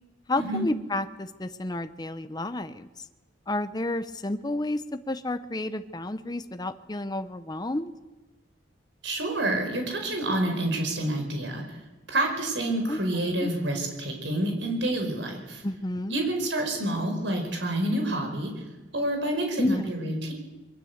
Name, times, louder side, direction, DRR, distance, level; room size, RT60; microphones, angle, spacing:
voice 1, 0.3-2.9 3.5-7.9 12.9-13.5 15.6-16.2 19.6-19.9, left 1 dB, 20° left, 9 dB, 0.8 m, -31 dB
voice 2, 9.0-11.6 12.1-15.6 16.1-18.5 18.9-20.3, right 1 dB, 75° right, 3 dB, 5.1 m, -28 dB
23.0 x 20.5 x 8.0 m, 1.1 s
head